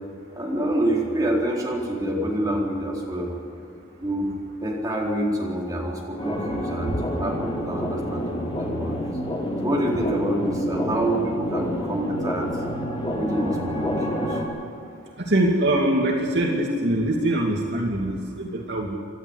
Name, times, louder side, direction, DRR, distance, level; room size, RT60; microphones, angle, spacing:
voice 1, 0.3-3.4 4.0-9.0 9.6-12.5 13.1-14.4, right 1 dB, 20° right, -4 dB, 4.3 m, -27 dB
sound 1, 6.2-14.4, equal, 25° left, 3.1 m, -28 dB
voice 2, 15.2-19.0, right 1 dB, 55° right, -1 dB, 2.5 m, -23 dB
27.0 x 12.5 x 8.2 m, 2.7 s
head